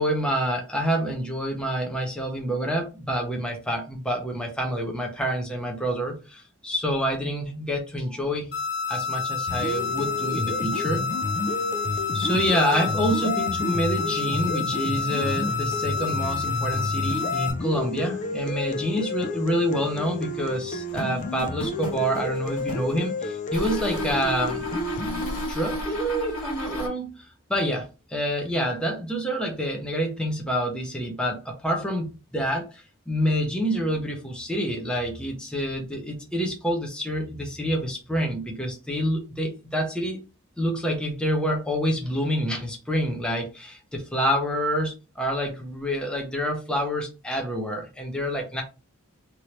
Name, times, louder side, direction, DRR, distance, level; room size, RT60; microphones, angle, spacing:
voice 1, 0.0-8.5 8.9-11.1 12.1-24.7 25.5-40.2 40.6-48.6, equal, 5° left, 1 dB, 0.7 m, -27 dB
sound 1, 8.5-17.5, left 5 dB, 50° left, 1.0 m, -29 dB
sound 2, 9.5-25.5, left 3 dB, 35° left, 0.4 m, -31 dB
sound 3, 20.9-23.0 23.5-26.9, equal, 80° left, 1.7 m, -32 dB
3.0 x 2.7 x 3.0 m, 0.30 s
head